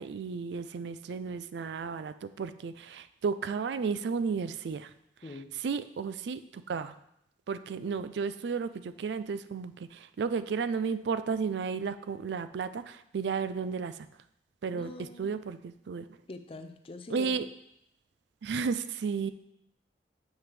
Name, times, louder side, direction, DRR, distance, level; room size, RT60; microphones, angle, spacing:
voice 1, 0.0-4.9 5.6-6.9 7.5-14.0 14.6-16.1 17.1-17.5 18.4-19.3, right 5 dB, 70° right, 12 dB, 0.4 m, -33 dB
voice 2, 5.2-5.5 14.7-15.3 16.3-17.4, left 2 dB, 30° left, 8 dB, 0.5 m, -44 dB
7.5 x 5.9 x 3.3 m, 0.77 s
head